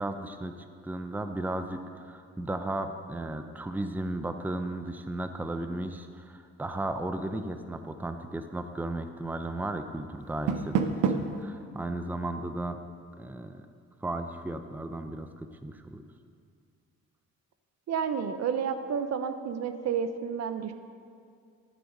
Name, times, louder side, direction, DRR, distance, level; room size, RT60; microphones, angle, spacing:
voice 1, 0.0-12.8 13.2-13.7 14.0-16.1, right 1 dB, 5° right, 8 dB, 0.6 m, -35 dB
Door, 10.2-11.4, right 6 dB, 90° right, 0.8 m, -28 dB
voice 2, 17.9-20.7, right 7 dB, 60° right, 9 dB, 0.7 m, -30 dB
11.0 x 7.7 x 5.3 m, 2.2 s
cardioid pair, 90°, 30 cm